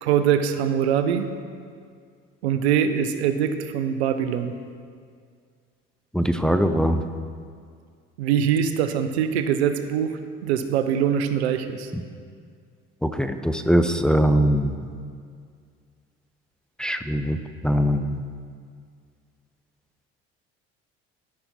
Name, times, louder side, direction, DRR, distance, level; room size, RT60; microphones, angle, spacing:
voice 1, 0.0-1.3 2.4-4.5 8.2-11.9, right 8 dB, 90° right, 9 dB, 0.6 m, -23 dB
voice 2, 6.1-7.0 13.0-14.7 16.8-18.3, equal, ahead, 7 dB, 0.5 m, -22 dB
13.0 x 5.8 x 4.2 m, 2.1 s
hypercardioid pair, 75°, 32 cm